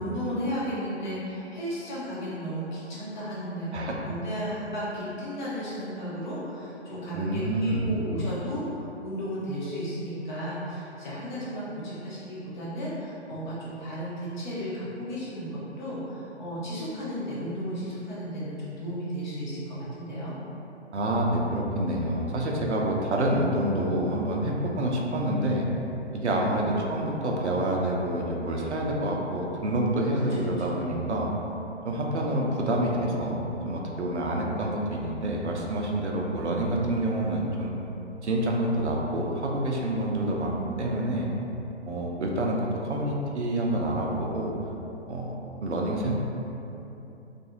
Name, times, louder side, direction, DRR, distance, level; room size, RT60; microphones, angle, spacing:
voice 1, 0.0-20.3 30.3-30.8 40.2-40.6, equal, 40° left, -8 dB, 0.8 m, -34 dB
voice 2, 7.1-7.9 20.9-25.6 26.1-31.3 31.8-37.7 38.2-41.3 41.8-44.6 45.1-45.3 45.6-46.1, right 1 dB, 75° right, -1 dB, 0.5 m, -27 dB
2.5 x 2.4 x 2.8 m, 2.9 s
figure-of-eight pair, 130°, 35 cm